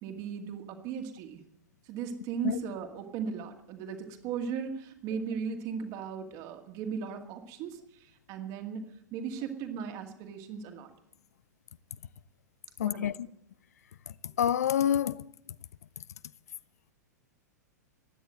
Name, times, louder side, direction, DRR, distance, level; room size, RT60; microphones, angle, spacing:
voice 1, 0.0-1.4 1.9-8.8 9.1-10.9 12.8-13.1, right 6 dB, 35° right, 2.1 m, -37 dB
voice 2, 12.8-13.3 14.2-15.2, left 9 dB, 60° left, 0.5 m, -27 dB
15.5 x 10.0 x 7.7 m
figure-of-eight pair, 100°, 9 cm